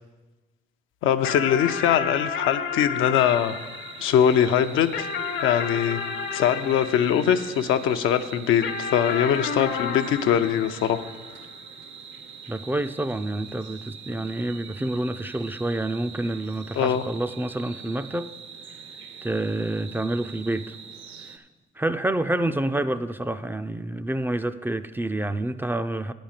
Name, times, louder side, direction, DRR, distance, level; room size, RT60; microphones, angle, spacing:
voice 1, 1.0-3.6 4.0-5.1 5.4-6.0 6.3-11.0 16.8-17.1, left 9 dB, 85° left, 8 dB, 0.6 m, -22 dB
sound 1, 1.2-7.9 8.6-11.4, left 6 dB, 65° left, 0.9 m, -32 dB
sound 2, 3.2-21.4, right 6 dB, 70° right, 0.8 m, -43 dB
voice 2, 12.5-18.3 19.2-20.7 21.3-21.4 21.8-26.1, right 1 dB, 10° right, 11 dB, 0.3 m, -28 dB
9.5 x 5.2 x 7.3 m, 1.3 s
cardioid pair, 90°, 20 cm